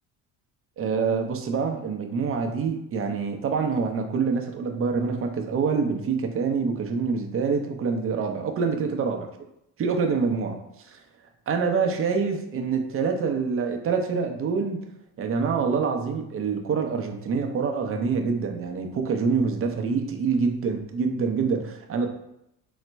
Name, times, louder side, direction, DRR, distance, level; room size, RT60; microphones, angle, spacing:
voice 1, 0.8-9.3 9.8-10.6 10.9-11.0 11.5-14.8 15.2-22.1, right 5 dB, 35° right, 4 dB, 0.6 m, -26 dB
4.0 x 2.1 x 4.5 m, 0.81 s
cardioid pair, 115°, 36 cm